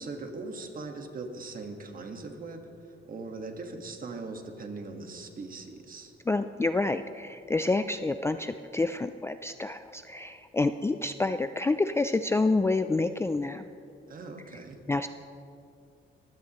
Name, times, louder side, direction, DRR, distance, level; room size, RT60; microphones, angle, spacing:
voice 1, 0.0-6.1 14.1-14.8, right 3 dB, 45° right, 4 dB, 1.6 m, -40 dB
voice 2, 6.3-13.7 14.9-15.1, left 3 dB, 15° left, 9 dB, 0.3 m, -28 dB
23.0 x 16.0 x 3.0 m, 2.5 s
cardioid pair, 130°, 21 cm